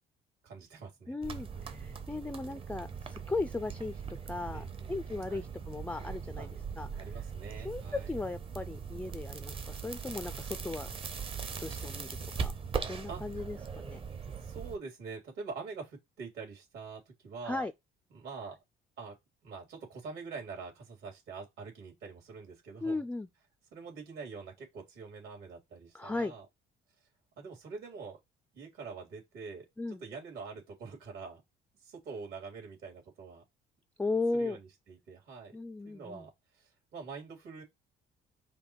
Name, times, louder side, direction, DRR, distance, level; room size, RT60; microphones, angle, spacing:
voice 1, 0.4-1.1 4.5-5.0 5.3-5.5 6.4-6.5 7.0-8.2 13.1-13.2 14.4-17.6 18.1-18.6 19.0-19.1 19.4-23.0 23.7-26.4 27.4-28.2 28.5-29.7 30.0-31.4 31.8-33.4 34.3-35.6 35.8-37.6, right 4 dB, 75° right, 3.1 m, -45 dB
voice 2, 1.1-6.5 6.8-7.0 7.6-10.9 11.6-12.5 12.9-14.0 17.4-17.7 22.8-23.3 25.9-26.3 29.8-30.0 34.0-34.6 35.5-36.3, left 3 dB, 10° left, 0.3 m, -36 dB
sound 1, 1.2-14.8, right 6 dB, 35° right, 0.8 m, -40 dB
5.2 x 2.2 x 4.6 m
cardioid pair, 110°, 17 cm